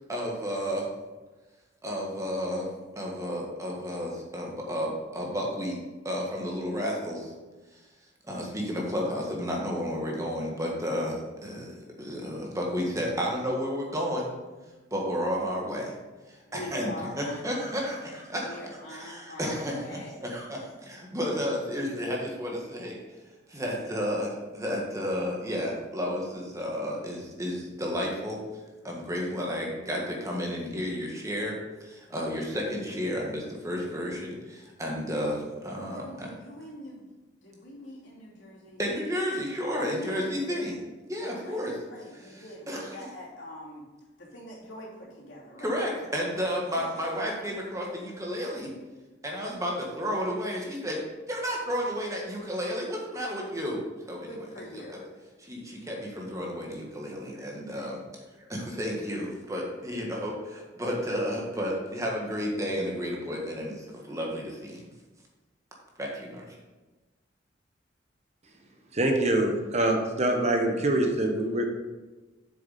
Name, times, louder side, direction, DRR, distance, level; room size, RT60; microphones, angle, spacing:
voice 1, 0.1-0.9 1.8-2.7 2.9-5.8 6.0-7.3 8.3-14.3 14.9-15.9 16.3-23.0 23.5-28.4 28.8-31.5 31.8-36.3 38.8-40.8 41.0-41.8 42.1-43.0 45.6-48.7 49.2-51.0 51.3-53.8 54.1-54.5 54.7-55.0 55.4-58.0 58.5-64.8 66.0-66.5, equal, 15° right, -2 dB, 1.5 m, -32 dB
voice 2, 16.5-18.0 18.4-20.1 35.8-37.0 37.4-38.8 39.7-40.7 41.2-41.6 41.9-43.8 44.2-45.8 46.3-47.1 54.3-55.0, left 1 dB, 75° left, -5 dB, 2.9 m, -43 dB
voice 3, 68.9-71.7, right 1 dB, 35° right, 3 dB, 1.0 m, -25 dB
7.7 x 6.7 x 4.2 m, 1.2 s
head